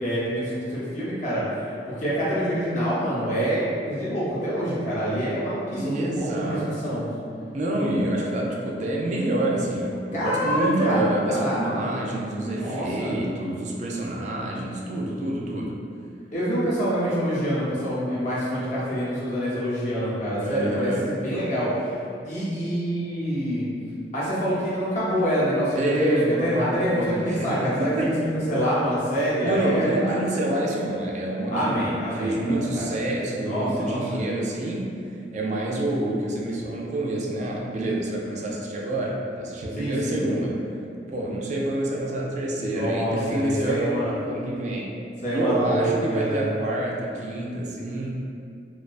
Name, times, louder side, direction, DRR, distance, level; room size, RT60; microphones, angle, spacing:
voice 1, 0.0-7.1 10.1-11.0 11.3-11.9 12.5-13.2 16.3-21.9 22.2-23.7 24.1-28.1 28.5-30.1 31.5-32.9 33.4-34.2 39.7-40.2 42.7-44.1 45.2-46.5, equal, 45° left, -9 dB, 0.7 m, -26 dB
voice 2, 5.8-7.0 7.5-15.8 20.4-21.1 25.8-28.1 29.4-31.8 32.1-34.9 35.3-40.6 41.1-44.9 45.3-48.1, right 1 dB, 40° right, -2 dB, 0.3 m, -27 dB
2.3 x 2.3 x 2.4 m, 2.4 s
head